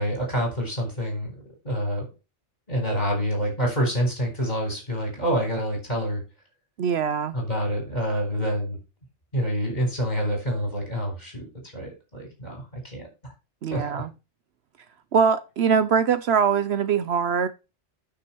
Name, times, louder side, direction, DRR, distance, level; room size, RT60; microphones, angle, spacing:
voice 1, 0.0-2.1 2.7-6.2 7.3-8.8 9.3-11.5 11.7-13.1 13.7-14.0, equal, 35° left, 4.6 m, -27 dB
voice 2, 6.8-7.4 13.6-14.1 15.1-17.5, right 6 dB, 65° right, 0.9 m, -22 dB
9.2 x 6.3 x 4.5 m
omnidirectional pair, 1.2 m